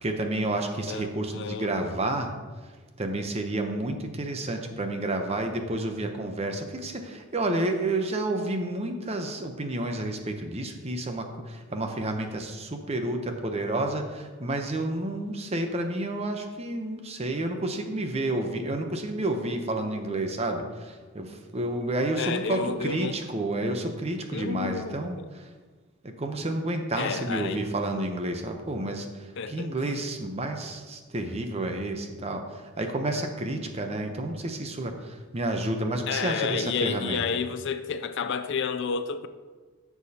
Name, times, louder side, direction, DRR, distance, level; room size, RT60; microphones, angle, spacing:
voice 1, 0.0-2.3 3.0-25.5 26.0-37.2, right 1 dB, 30° right, 5 dB, 0.8 m, -30 dB
voice 2, 0.9-1.7 22.2-23.2 24.3-25.3 27.0-27.6 29.4-29.7 36.1-39.3, left 5 dB, 55° left, 11 dB, 0.4 m, -30 dB
10.5 x 7.1 x 2.8 m, 1.4 s
head